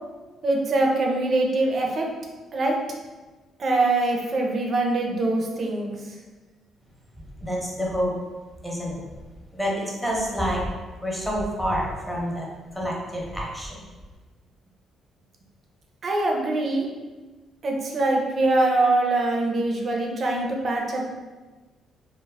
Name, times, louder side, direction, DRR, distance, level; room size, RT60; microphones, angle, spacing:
voice 1, 0.4-2.1 2.5-2.8 3.6-6.0 16.0-16.9 17.6-21.1, right 2 dB, 50° right, 1 dB, 0.5 m, -23 dB
voice 2, 7.3-8.1 8.6-9.0 9.5-10.6 11.0-13.8, equal, ahead, -3 dB, 0.7 m, -28 dB
2.2 x 2.0 x 3.3 m, 1.3 s
cardioid pair, 90°, 0 cm